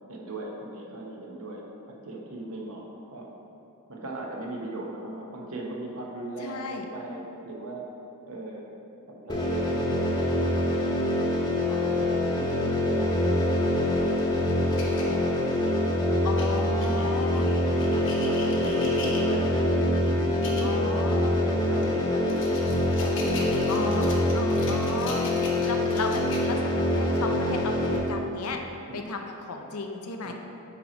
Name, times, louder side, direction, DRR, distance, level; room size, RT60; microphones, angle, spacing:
voice 1, 0.1-3.3 3.9-7.9 8.3-8.6 9.1-10.0 10.6-13.0 13.5-16.3 16.8-17.2 17.7-21.0 21.4-23.9 25.2-25.6 28.9-29.1 30.2-30.3, right 2 dB, 70° right, -2 dB, 1.0 m, -38 dB
voice 2, 6.4-6.8 16.2-17.5 20.6-21.4 23.7-24.0 24.3-25.3 25.6-28.6 28.9-30.3, left 3 dB, 75° left, 4 dB, 0.6 m, -34 dB
sound 1, 9.3-28.0, left 1 dB, 20° left, 0.9 m, -25 dB
sound 2, 14.2-15.8 16.3-19.6 20.2-20.7 21.1-21.3 21.8-26.9, left 3 dB, 60° left, 1.0 m, -41 dB
8.3 x 3.0 x 5.1 m, 2.8 s
head